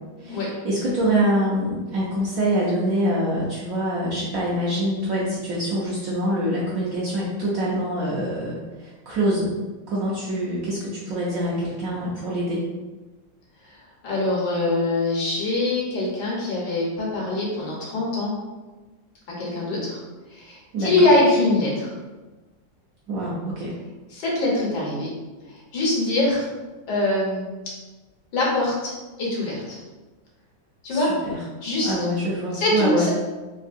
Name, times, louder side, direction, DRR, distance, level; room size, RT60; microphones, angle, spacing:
voice 1, 0.2-9.5 9.9-12.6 20.7-20.9 23.1-23.7 30.9-31.4 31.8-33.1, right 1 dB, 65° right, -6 dB, 0.9 m, -25 dB
voice 2, 14.0-18.3 19.4-20.0 20.3-21.9 24.1-25.1 25.7-26.5 26.9-27.5 28.3-28.9 29.2-29.8 30.8-31.1 31.6-31.9 32.5-33.1, left 2 dB, 65° left, -4 dB, 1.5 m, -23 dB
3.6 x 2.6 x 2.5 m, 1.2 s
omnidirectional pair, 2.0 m